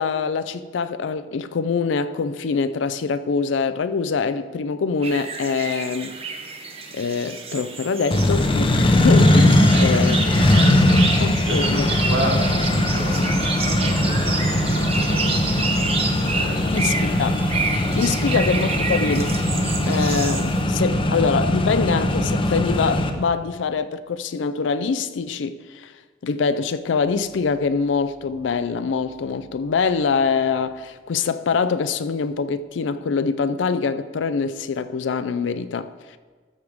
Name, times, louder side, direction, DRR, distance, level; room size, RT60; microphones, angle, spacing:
voice 1, 0.0-6.2 6.9-10.3 11.2-11.9 16.7-17.4 18.0-19.4 19.9-25.9 26.2-36.2, left 5 dB, 80° left, 0.4 m, -24 dB
sound 1, 5.0-20.6, right 4 dB, 35° right, 0.8 m, -29 dB
Accelerating revving vroom, 8.1-23.1, left 1 dB, 30° left, 0.6 m, -20 dB
voice 2, 10.4-12.4 12.9-15.8 16.2-16.9 17.9-18.4 20.7-20.8, right 1 dB, 90° right, 1.7 m, -33 dB
13.5 x 6.3 x 3.5 m
head